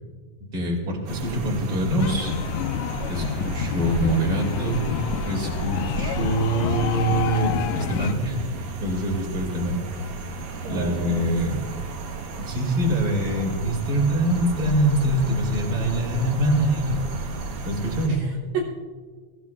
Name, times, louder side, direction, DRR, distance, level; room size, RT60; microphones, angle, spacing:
voice 1, 0.5-2.3 3.1-4.9 5.3-8.4 8.8-9.8 10.7-11.6 12.4-17.0 17.6-18.3, right 1 dB, 30° right, 0 dB, 2.9 m, -24 dB
sound 1, 1.1-18.1, right 4 dB, 55° right, 2.0 m, -33 dB
sound 2, 2.0-8.1, left 8 dB, 85° left, 2.2 m, -29 dB
voice 2, 10.6-11.4 18.1-18.6, right 6 dB, 70° right, -1 dB, 2.4 m, -31 dB
21.5 x 15.5 x 2.5 m, 1.5 s
omnidirectional pair, 3.5 m